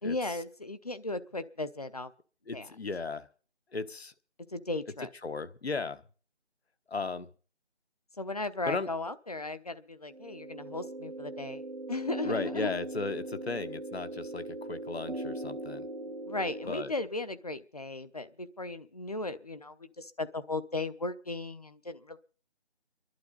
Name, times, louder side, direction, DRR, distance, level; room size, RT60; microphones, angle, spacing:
voice 1, 0.0-2.1 2.5-2.7 4.5-5.1 8.2-11.6 11.9-12.7 16.3-22.2, left 2 dB, 35° left, 12 dB, 0.8 m, -36 dB
voice 2, 2.5-3.3 3.7-4.1 5.2-6.0 6.9-7.3 8.6-8.9 12.2-15.8 16.7-16.9, left 4 dB, 70° left, 11 dB, 1.3 m, -35 dB
sound 1, 10.1-16.7, right 1 dB, 65° right, 2.0 m, -39 dB
27.5 x 11.5 x 4.0 m, 0.41 s
figure-of-eight pair, 175°, 33 cm